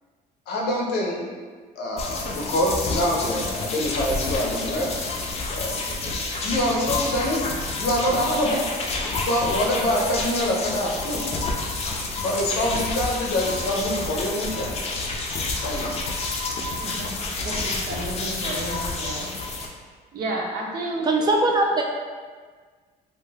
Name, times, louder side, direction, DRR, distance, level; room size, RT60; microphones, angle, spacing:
voice 1, 0.5-1.3 1.8-4.9 5.5-5.9 6.4-7.5 7.8-8.7 9.2-11.2 12.2-14.7 15.6-15.9, left 1 dB, 80° left, -1 dB, 0.6 m, -25 dB
sound 1, 2.0-19.7, left 3 dB, 40° left, 0.4 m, -29 dB
voice 2, 16.6-17.1 17.4-19.3 20.1-21.1, right 2 dB, 65° right, -1 dB, 0.6 m, -32 dB
voice 3, 21.0-21.8, right 2 dB, 25° right, 1 dB, 0.4 m, -20 dB
2.5 x 2.3 x 3.2 m, 1.5 s
cardioid pair, 110°, 17 cm